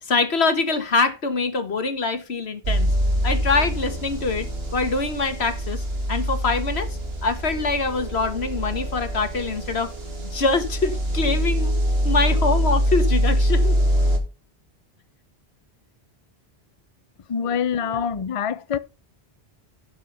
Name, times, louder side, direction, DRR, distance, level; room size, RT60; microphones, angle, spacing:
voice 1, 0.0-2.9 3.2-9.9 10.2-11.8 12.0-13.8 17.4-18.0, left 3 dB, 85° left, 1.8 m, -24 dB
sound 1, 2.6-14.2, equal, 75° right, 2.3 m, -24 dB
voice 2, 17.3-18.8, left 7 dB, 40° left, 0.6 m, -25 dB
12.0 x 6.2 x 5.6 m
omnidirectional pair, 1.0 m